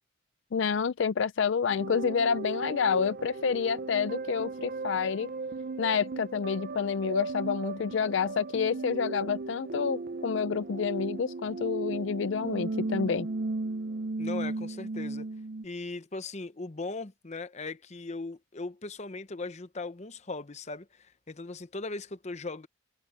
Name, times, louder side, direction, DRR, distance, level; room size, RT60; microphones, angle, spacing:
voice 1, 0.5-5.3 5.8-13.3, left 6 dB, 65° left, 0.4 m, -29 dB
sound 1, 1.7-15.6, right 3 dB, 45° right, 0.5 m, -36 dB
voice 2, 14.2-15.3 15.6-22.7, left 3 dB, 35° left, 0.8 m, -38 dB
head